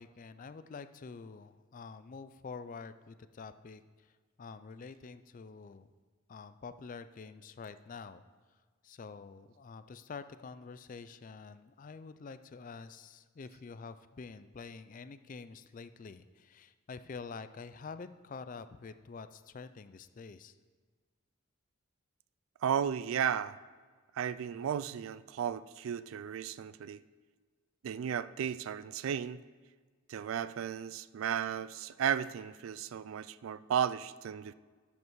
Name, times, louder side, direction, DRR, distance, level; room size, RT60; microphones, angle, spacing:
voice 1, 0.0-4.1 4.4-5.9 6.3-8.2 8.8-20.5, left 4 dB, 40° left, 12 dB, 0.4 m, -47 dB
voice 2, 22.6-23.6 24.1-27.0 27.8-29.4 30.1-34.5, right 8 dB, 75° right, 16 dB, 0.3 m, -34 dB
12.0 x 5.3 x 4.7 m, 1.5 s
head